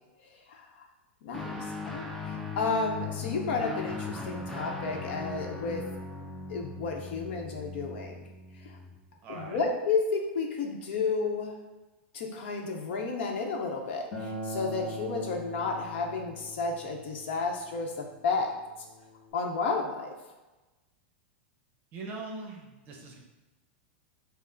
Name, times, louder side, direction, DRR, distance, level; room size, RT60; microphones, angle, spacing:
voice 1, 1.2-1.7 1.9-5.9 6.5-8.1 9.3-11.5 12.1-18.5 19.3-20.1, left 4 dB, 65° left, 2 dB, 0.8 m, -32 dB
Guitar, 1.3-9.0, left 4 dB, ahead, 0.4 m, -39 dB
voice 2, 9.2-9.7 21.9-23.2, right 3 dB, 30° right, 1 dB, 0.7 m, -41 dB
Acoustic guitar, 14.1-19.3, equal, 20° left, 0.9 m, -42 dB
5.3 x 2.0 x 3.9 m, 1.1 s
supercardioid pair, 155°, 6 cm